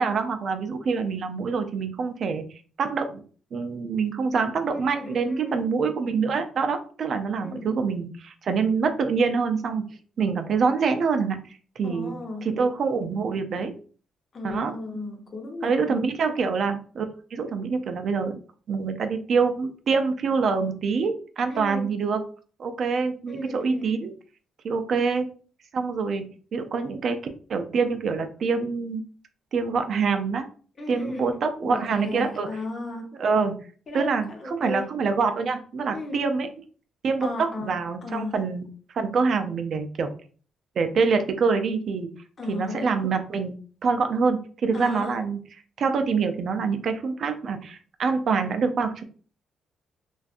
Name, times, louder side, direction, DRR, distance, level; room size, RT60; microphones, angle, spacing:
voice 1, 0.0-2.4 2.8-3.2 3.5-9.8 10.2-12.1 12.4-13.7 14.4-14.7 15.6-17.1 17.3-18.4 18.7-22.2 22.6-24.1 24.6-25.3 25.7-27.2 27.5-29.0 29.5-30.5 30.9-32.5 33.2-33.5 33.9-36.5 37.0-38.6 38.9-40.1 40.8-42.1 42.5-43.5 43.8-45.4 45.8-49.0, right 5 dB, 60° right, 0.4 m, -25 dB
voice 2, 4.9-5.7 7.4-7.7 11.8-12.5 14.3-16.0 21.5-21.9 23.3-24.0 30.8-33.1 33.9-34.9 35.9-36.2 37.2-38.4 42.4-43.0 44.7-45.2, left 2 dB, 40° left, 0.8 m, -35 dB
2.5 x 2.3 x 2.4 m
cardioid pair, 90°, 0 cm